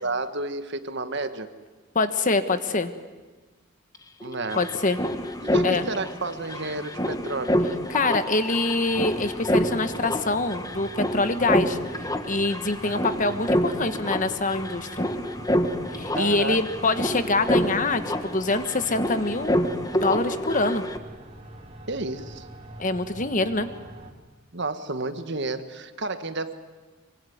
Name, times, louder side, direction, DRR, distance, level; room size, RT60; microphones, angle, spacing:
voice 1, 0.0-1.5 4.2-4.6 5.4-7.6 12.8-13.2 16.1-16.6 21.9-22.5 24.5-26.6, right 3 dB, 55° right, 10 dB, 1.6 m, -31 dB
voice 2, 1.9-2.9 4.6-5.0 5.6-5.8 7.9-15.1 15.9-19.6 19.9-20.8 22.8-23.7, left 3 dB, 35° left, 10 dB, 1.4 m, -25 dB
sound 1, 3.9-4.0 4.2-21.0, equal, 15° left, 1.4 m, -28 dB
sound 2, 8.8-24.1, right 2 dB, 30° right, 3.2 m, -44 dB
24.5 x 24.0 x 9.4 m, 1.3 s
head